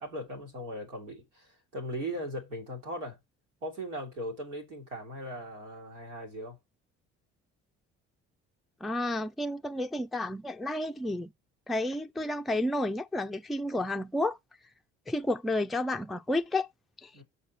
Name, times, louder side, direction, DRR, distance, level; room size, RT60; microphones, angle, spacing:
voice 1, 0.0-3.2 3.6-6.6 17.1-17.2, equal, 85° right, 2.2 m, -38 dB
voice 2, 8.8-11.3 11.7-14.4 15.1-16.7 17.0-17.1, left 1 dB, ahead, 0.4 m, -31 dB
6.6 x 4.2 x 5.5 m
hypercardioid pair, 50°, 36 cm